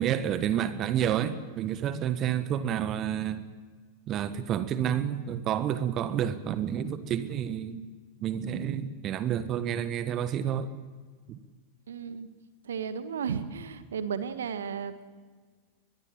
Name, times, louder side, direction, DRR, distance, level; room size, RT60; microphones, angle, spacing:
voice 1, 0.0-3.4 4.1-7.8 8.2-10.7 11.3-11.4, right 9 dB, 30° right, 1.4 m, -29 dB
voice 2, 11.9-12.3 12.6-15.0, right 7 dB, 65° right, 1.6 m, -34 dB
23.0 x 22.0 x 7.5 m
figure-of-eight pair, 90°, 0 cm